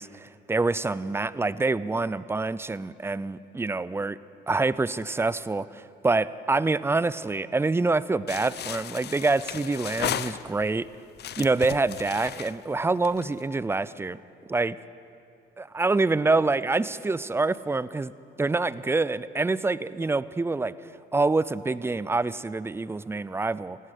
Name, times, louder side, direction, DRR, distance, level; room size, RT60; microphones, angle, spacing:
voice 1, 0.0-4.2 4.5-10.9 11.4-14.2 14.5-14.8 15.6-18.1 18.4-20.7 21.1-23.8, right 3 dB, 10° right, 17 dB, 0.4 m, -26 dB
sound 1, 8.3-10.8 11.2-13.4, left 10 dB, 55° left, 0.5 m, -35 dB
16.5 x 12.0 x 6.7 m, 2.5 s
cardioid pair, 90°, 20 cm